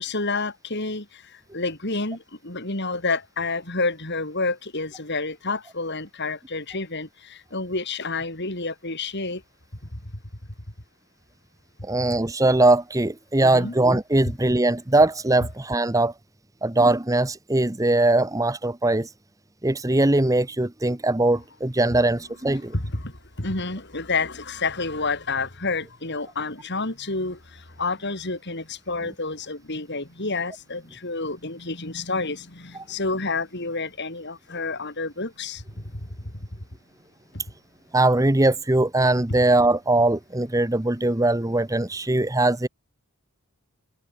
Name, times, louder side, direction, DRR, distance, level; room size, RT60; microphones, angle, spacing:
voice 1, 0.0-9.4 9.9-10.0 13.4-13.8 22.5-23.1 23.4-35.6 35.9-36.1 37.3-37.4, left 3 dB, 50° left, 4.4 m, -29 dB
voice 2, 11.8-16.1 16.6-19.1 19.6-22.7 37.9-42.7, right 2 dB, 15° right, 0.9 m, -21 dB
head